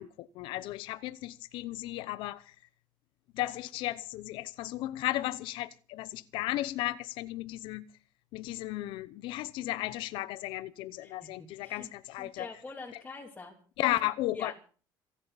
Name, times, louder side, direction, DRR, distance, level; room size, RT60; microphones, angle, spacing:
voice 1, 0.0-2.5 3.3-7.8 8.3-12.5 13.8-14.6, left 16 dB, 75° left, 0.8 m, -35 dB
voice 2, 11.6-11.9 12.2-13.6 14.3-14.5, left 3 dB, 15° left, 2.9 m, -44 dB
27.5 x 10.5 x 4.1 m
cardioid pair, 160°, 9 cm